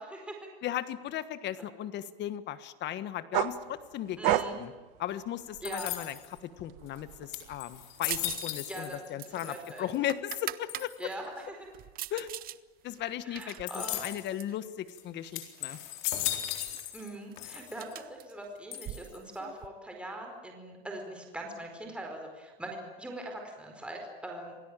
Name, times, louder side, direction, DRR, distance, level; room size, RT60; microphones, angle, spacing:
voice 1, 0.0-0.5 1.6-1.7 4.2-4.6 5.6-5.9 8.7-9.9 11.0-11.7 13.2-14.0 16.9-24.5, right 1 dB, 5° right, 2 dB, 4.7 m, -42 dB
voice 2, 0.6-4.7 5.0-10.9 12.1-12.3 12.8-15.8, left 11 dB, 35° left, 13 dB, 1.4 m, -36 dB
sound 1, 3.3-6.0 6.4-8.3, right 15 dB, 60° right, 1.4 m, -32 dB
sound 2, 5.6-6.4 7.0-7.1 7.3-9.1 9.3-10.0 10.7-11.1 13.7-14.3 14.9-15.0 15.3-17.1 17.4-18.0 18.7-19.3, left 13 dB, 65° left, 4.2 m, -37 dB
sound 3, 8.1-8.5 8.8-10.9 11.4-12.6 12.9-14.6 15.3-15.9 16.2-16.3 16.6-19.7, right 14 dB, 30° right, 0.7 m, -42 dB
27.5 x 18.0 x 9.1 m, 1.2 s
supercardioid pair, 145°, 31 cm